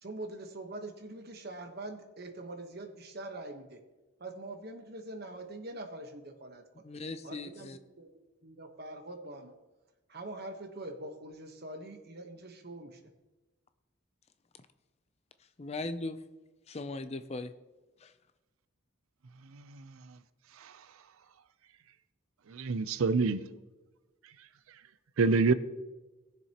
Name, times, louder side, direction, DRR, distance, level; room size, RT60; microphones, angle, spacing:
voice 1, 0.0-3.8 4.2-6.6 7.2-8.1 8.4-9.5 10.1-13.0, right 2 dB, 50° right, 5 dB, 1.1 m, -44 dB
voice 2, 6.8-7.8 15.6-16.2 16.7-17.5 18.0-18.1, left 2 dB, 30° left, 11 dB, 0.5 m, -38 dB
voice 3, 22.5-23.4 25.2-25.5, right 4 dB, 80° right, 13 dB, 0.5 m, -25 dB
19.0 x 6.9 x 2.9 m, 1.1 s
head